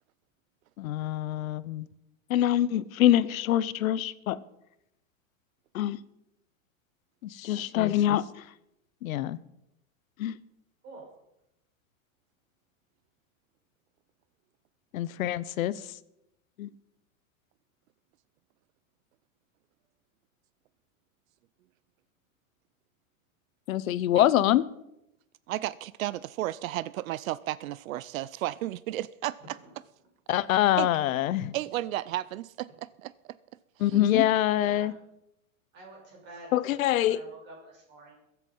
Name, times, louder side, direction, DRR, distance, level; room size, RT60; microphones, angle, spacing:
voice 1, 0.8-1.9 2.3-4.4 5.7-6.0 7.2-8.3 9.0-9.4 10.2-10.4 14.9-15.7 16.6-16.7 23.7-24.6 30.3-31.5 33.8-34.9 36.5-37.2, left 12 dB, 85° left, 0.9 m, -25 dB
voice 2, 25.5-29.6 30.8-30.9 31.5-33.1 33.9-34.0, right 15 dB, 80° right, 0.6 m, -33 dB
voice 3, 34.5-35.0 35.7-38.1, right 2 dB, 25° right, 5.9 m, -49 dB
22.0 x 8.2 x 5.4 m
supercardioid pair, 170°, 40 cm